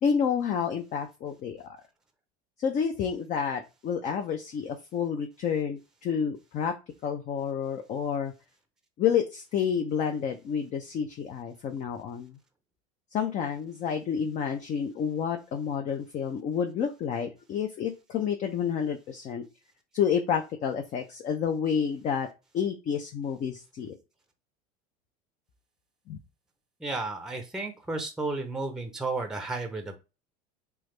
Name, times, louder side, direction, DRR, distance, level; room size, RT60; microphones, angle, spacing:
voice 1, 0.0-1.8 2.6-6.7 7.0-8.3 9.0-12.4 13.1-19.4 19.9-22.3 22.5-24.0 26.1-26.2, left 7 dB, 40° left, 5 dB, 0.5 m, -29 dB
voice 2, 26.8-30.0, right 3 dB, 5° right, 5 dB, 0.6 m, -33 dB
3.4 x 2.0 x 3.2 m, 0.28 s
supercardioid pair, 100°, 18 cm